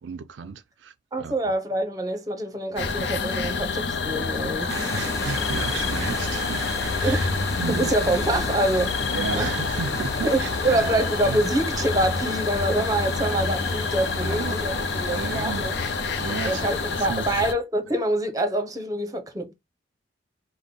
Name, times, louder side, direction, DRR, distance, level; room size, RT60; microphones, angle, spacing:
voice 1, 0.0-1.3 4.6-7.3 7.6-7.9 9.1-10.9 11.2-11.4 14.2-14.8 15.2-15.7 16.2-17.3, right 5 dB, 75° right, 0.4 m, -33 dB
voice 2, 1.1-4.7 7.0-7.2 7.7-9.0 9.3-9.5 10.2-15.7 16.4-19.5, right 1 dB, 20° right, 0.7 m, -26 dB
sound 1, 2.8-17.5, left 4 dB, 65° left, 0.6 m, -28 dB
sound 2, 4.7-17.1, left 1 dB, 15° left, 0.9 m, -35 dB
5.2 x 2.1 x 3.7 m
head